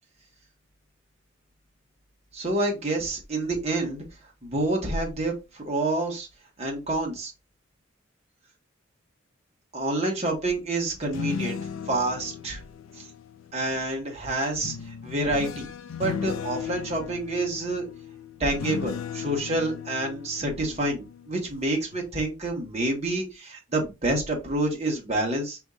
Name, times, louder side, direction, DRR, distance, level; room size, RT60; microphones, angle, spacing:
voice 1, 2.3-4.0 4.4-6.3 6.6-7.3 9.7-11.6 11.9-12.6 13.0-13.1 13.5-14.7 15.0-15.7 16.0-17.9 18.4-25.7, right 2 dB, 30° right, 0 dB, 1.4 m, -28 dB
sound 1, 10.9-13.8 14.6-21.5 21.9-22.2, left 7 dB, 85° left, 0.4 m, -36 dB
5.0 x 3.8 x 2.4 m, 0.26 s
head